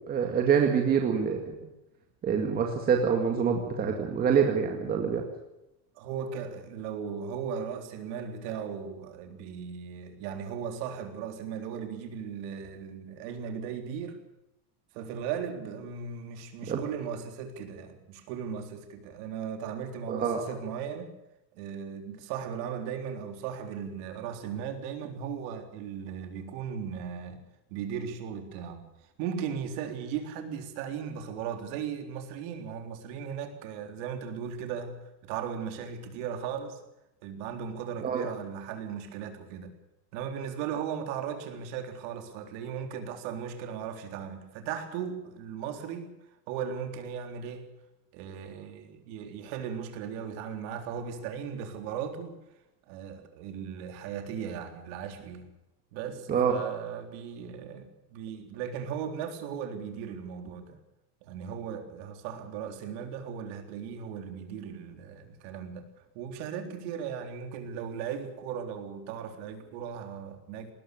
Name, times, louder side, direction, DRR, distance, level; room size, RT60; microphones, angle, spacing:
voice 1, 0.1-1.5 2.2-5.2 16.7-16.8 20.1-20.4 38.0-38.3 56.3-56.6, right 7 dB, 20° right, 2 dB, 2.0 m, -26 dB
voice 2, 6.0-14.2 14.9-21.1 21.5-27.4 27.7-28.9 29.2-36.8 37.2-39.8 40.1-46.2 46.5-47.7 48.1-52.4 52.9-55.5 55.9-60.8 61.2-65.9 66.1-70.7, right 7 dB, 45° right, 6 dB, 3.8 m, -37 dB
20.5 x 19.5 x 6.8 m, 0.91 s
supercardioid pair, 175°, 48 cm